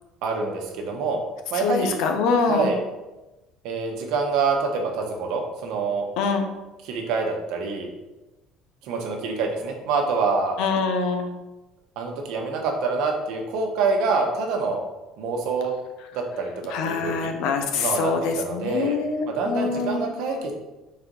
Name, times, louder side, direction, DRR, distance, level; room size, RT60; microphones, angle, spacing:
voice 1, 0.2-1.2 1.5-2.0 2.4-2.8 3.6-6.1 6.8-7.9 8.8-10.6 12.0-14.8 15.2-15.7 16.1-16.5 16.8-17.3 17.7-19.0 19.2-20.5, right 4 dB, 65° right, 2 dB, 1.2 m, -26 dB
voice 2, 1.6-2.7 6.2-6.5 10.6-11.3 16.7-20.0 20.3-20.4, left 5 dB, 70° left, 5 dB, 0.8 m, -24 dB
4.4 x 4.2 x 5.4 m, 1.1 s
cardioid pair, 160°, 0 cm